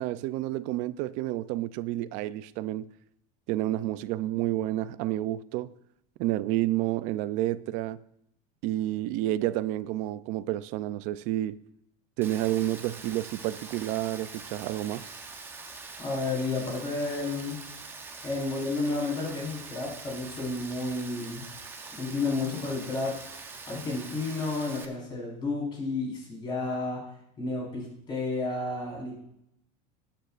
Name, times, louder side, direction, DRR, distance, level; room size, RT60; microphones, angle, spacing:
voice 1, 0.0-2.9 3.5-5.8 6.2-8.0 8.6-11.6 12.2-15.1, right 14 dB, 40° right, 0.4 m, -30 dB
Rain, 12.2-24.8, right 4 dB, 10° right, 0.7 m, -44 dB
voice 2, 16.0-17.6 18.2-21.4 21.9-23.2 23.7-27.0 27.4-29.2, left 3 dB, 25° left, 4.4 m, -31 dB
20.0 x 9.1 x 2.5 m
supercardioid pair, 170°, 19 cm